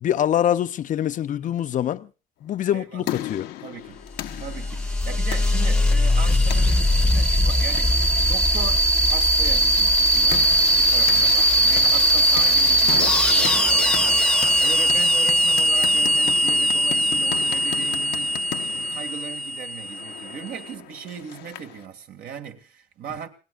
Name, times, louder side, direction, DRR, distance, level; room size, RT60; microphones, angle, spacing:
voice 1, 0.0-2.1 2.4-3.5, left 10 dB, 50° left, 0.7 m, -24 dB
sound 1, 2.6-21.8, left 13 dB, 85° left, 1.0 m, -37 dB
voice 2, 2.7-3.2 3.6-4.1 4.4-23.3, right 8 dB, 65° right, 2.1 m, -38 dB
sound 2, 4.2-20.5, equal, 5° left, 1.0 m, -20 dB
28.5 x 18.0 x 2.5 m
cardioid pair, 110°, 17 cm